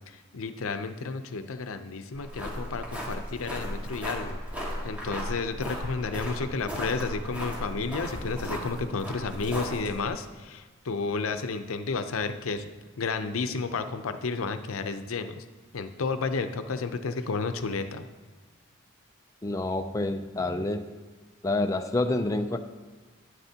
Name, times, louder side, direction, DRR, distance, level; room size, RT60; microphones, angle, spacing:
voice 1, 0.1-4.4 4.8-12.6 13.0-15.4 15.7-18.0, left 4 dB, 90° left, 9 dB, 0.6 m, -32 dB
sound 1, 2.2-10.1, equal, 5° right, 1.8 m, -36 dB
voice 2, 19.4-20.9 21.4-22.6, left 2 dB, 15° left, 6 dB, 0.4 m, -28 dB
11.5 x 9.5 x 2.8 m, 1.3 s
head